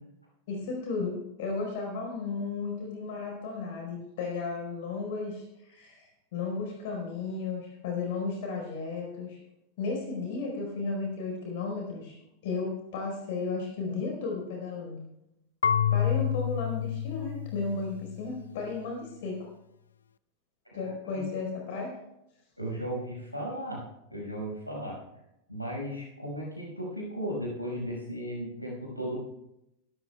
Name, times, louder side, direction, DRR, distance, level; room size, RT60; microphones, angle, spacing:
voice 1, 0.5-9.4 9.8-12.2 12.4-15.0 15.9-19.5 20.7-21.9, left 4 dB, 50° left, 0 dB, 4.4 m, -34 dB
Marimba xylophone / Wood, 15.6-18.5, left 9 dB, 70° left, 0.4 m, -29 dB
voice 2, 20.7-21.2 22.6-25.0 25.5-29.2, equal, 90° left, -2 dB, 5.5 m, -36 dB
23.5 x 13.0 x 2.3 m, 0.86 s
figure-of-eight pair, 90°, 0 cm